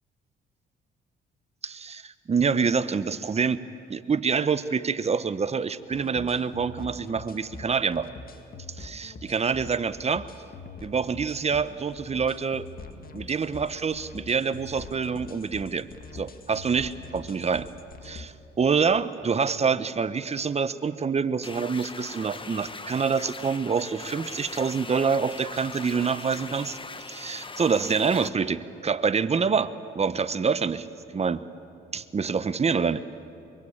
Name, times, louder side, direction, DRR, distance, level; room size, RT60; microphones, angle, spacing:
voice 1, 1.6-3.6 3.9-8.1 8.8-10.2 10.8-12.7 13.1-15.9 16.1-17.7 18.0-26.8 27.1-30.9 31.1-31.4 31.9-33.0, right 5 dB, 30° right, 13 dB, 1.0 m, -26 dB
sound 1, 5.9-18.3, left 3 dB, 45° left, 2.0 m, -44 dB
sound 2, 21.4-28.3, left 4 dB, 25° left, 1.2 m, -40 dB
23.5 x 23.5 x 8.8 m, 2.7 s
cardioid pair, 90°, 20 cm